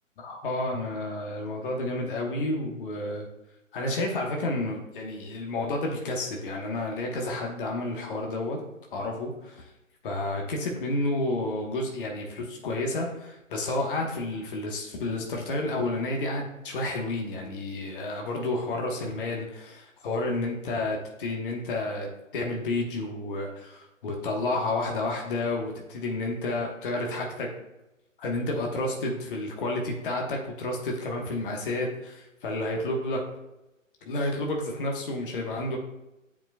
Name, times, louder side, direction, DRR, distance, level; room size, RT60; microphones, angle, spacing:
voice 1, 0.2-3.3 3.7-8.7 8.9-9.6 10.0-27.5 28.2-33.2 34.0-35.8, left 2 dB, 40° left, 0 dB, 1.2 m, -30 dB
11.0 x 4.8 x 2.2 m, 0.93 s
figure-of-eight pair, 145°, 40 cm